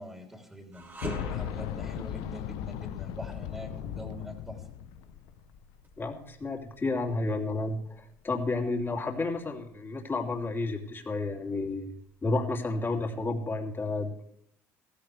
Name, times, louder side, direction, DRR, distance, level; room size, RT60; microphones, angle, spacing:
voice 1, 0.0-4.6, left 1 dB, 5° right, 2 dB, 3.0 m, -43 dB
sound 1, 0.7-10.0 10.4-10.6 11.4-12.3, right 2 dB, 25° right, 2.3 m, -46 dB
Boom, 1.0-5.8 6.0-6.1 7.2-7.3, left 13 dB, 75° left, 0.5 m, -37 dB
voice 2, 6.0-11.9 12.2-14.3, left 2 dB, 25° left, 2 dB, 2.9 m, -31 dB
16.0 x 15.0 x 3.4 m, 0.69 s
supercardioid pair, 75°, 8 cm